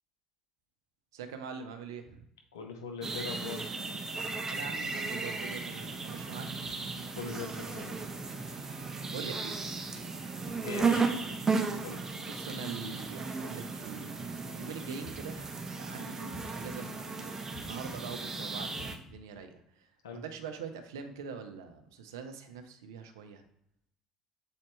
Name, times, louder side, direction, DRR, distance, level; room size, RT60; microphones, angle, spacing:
voice 1, 1.1-2.2 4.5-6.7 9.0-9.6 12.3-23.4, right 6 dB, 75° right, 7 dB, 0.7 m, -44 dB
voice 2, 2.5-3.7 7.1-7.9 10.6-11.1 11.8-12.0 20.0-20.2, left 5 dB, 80° left, 3 dB, 0.9 m, -40 dB
sound 1, 3.0-19.0, right 4 dB, 25° right, 0.9 m, -35 dB
sound 2, 15.0-15.7 16.3-17.0 17.5-18.2 18.8-19.4, left 2 dB, 60° left, 1.8 m, -51 dB
7.1 x 4.3 x 3.2 m, 0.75 s
figure-of-eight pair, 55°, 2 cm